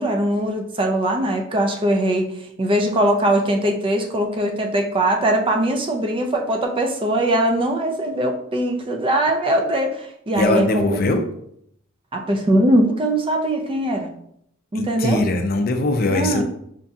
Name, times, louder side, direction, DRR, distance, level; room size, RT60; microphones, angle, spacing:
voice 1, 0.0-11.0 12.1-14.1 14.7-15.2 16.1-16.4, right 1 dB, 25° right, 3 dB, 0.4 m, -21 dB
voice 2, 10.3-11.2 14.7-16.4, left 2 dB, 45° left, 6 dB, 0.4 m, -21 dB
5.1 x 2.7 x 2.3 m, 0.71 s
head